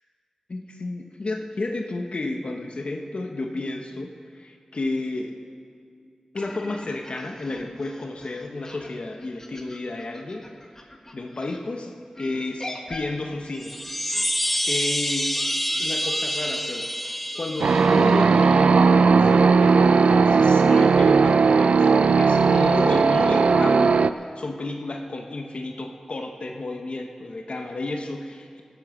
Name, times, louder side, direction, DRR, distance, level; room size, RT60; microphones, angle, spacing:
voice 1, 0.5-5.4 6.3-10.5 11.1-11.9 12.2-13.8 14.6-16.9 17.4-28.6, left 2 dB, 65° left, 3 dB, 1.0 m, -32 dB
sound 1, 6.3-11.6 12.1-18.0, left 1 dB, 25° left, 1.4 m, -43 dB
sound 2, 13.5-18.6, equal, 5° left, 0.3 m, -27 dB
sound 3, 17.6-24.1, right 5 dB, 85° right, 0.3 m, -17 dB
16.0 x 8.7 x 6.4 m, 2.3 s
wide cardioid pair, 80°, 2 cm